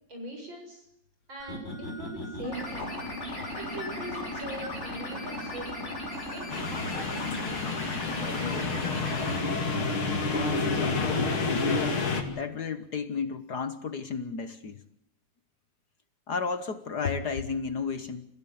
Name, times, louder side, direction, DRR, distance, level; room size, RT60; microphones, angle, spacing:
voice 1, 0.1-0.9 1.3-2.9 3.5-5.7 6.3-7.6, right 1 dB, 60° right, 3 dB, 8.3 m, -42 dB
sound 1, 1.4-9.4, left 1 dB, 30° left, 6.0 m, -36 dB
sound 2, 6.5-12.2, left 3 dB, 75° left, 3.6 m, -29 dB
voice 2, 11.0-11.8 12.2-14.8 16.3-18.3, left 5 dB, 55° left, 11 dB, 1.7 m, -33 dB
29.0 x 16.0 x 8.6 m, 0.76 s
omnidirectional pair, 2.3 m